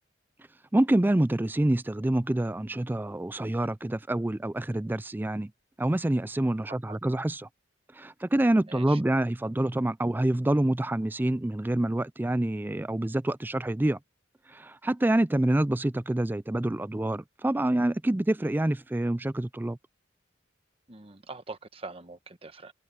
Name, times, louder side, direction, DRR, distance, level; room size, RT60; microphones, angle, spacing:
voice 1, 0.7-5.5 5.8-7.5 8.0-14.0 14.5-19.8, right 1 dB, 10° right, 0.4 m, -27 dB
voice 2, 6.7-7.0 8.7-9.0 20.9-22.7, right 3 dB, 30° right, 1.1 m, -43 dB
head